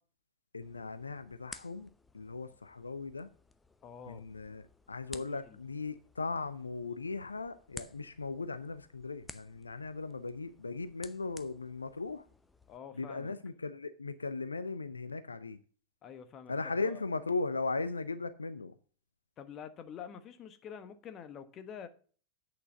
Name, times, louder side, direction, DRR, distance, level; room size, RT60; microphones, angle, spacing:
voice 1, 0.5-3.3 4.1-12.3 12.9-15.6 16.5-18.7, left 3 dB, 80° left, 0.6 m, -38 dB
sound 1, 0.6-12.8, left 3 dB, 10° left, 0.7 m, -55 dB
voice 2, 3.8-4.2 5.1-5.6 12.7-13.3 16.0-17.0 19.4-21.9, left 7 dB, 30° left, 1.1 m, -47 dB
8.5 x 6.7 x 5.6 m
figure-of-eight pair, 90°, 0 cm